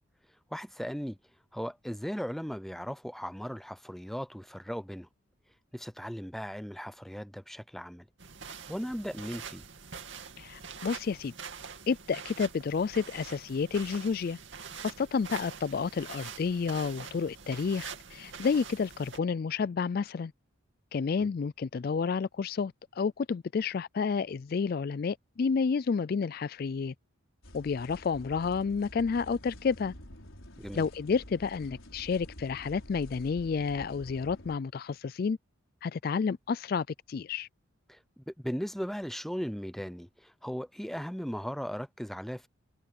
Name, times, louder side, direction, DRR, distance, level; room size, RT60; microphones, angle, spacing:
voice 1, 0.5-1.2 1.5-5.1 5.7-8.0 8.7-9.6 21.2-21.3 30.6-30.9 37.9-42.5, equal, ahead, 0.6 m, -37 dB
sound 1, 8.2-19.2, right 6 dB, 65° right, 2.6 m, -45 dB
voice 2, 10.4-11.3 11.9-14.4 14.8-20.3 20.9-26.9 27.5-29.9 30.7-35.4 35.8-37.5, left 5 dB, 45° left, 0.3 m, -30 dB
sound 2, 27.4-34.6, left 1 dB, 75° left, 4.8 m, -49 dB
head